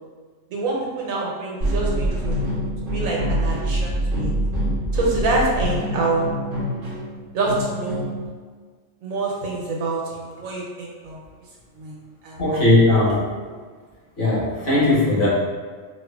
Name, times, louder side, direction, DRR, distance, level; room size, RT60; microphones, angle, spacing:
voice 1, 0.5-4.3 4.9-6.3 7.3-8.0 9.0-11.2 11.8-12.0 12.2-12.4, right 2 dB, 85° right, -3 dB, 1.2 m, -26 dB
sound 1, 1.6-8.3, equal, 50° right, 0.9 m, -25 dB
voice 2, 12.4-13.2 14.2-15.3, left 2 dB, 60° left, -9 dB, 1.6 m, -18 dB
4.3 x 2.6 x 2.4 m, 1.5 s
omnidirectional pair, 1.4 m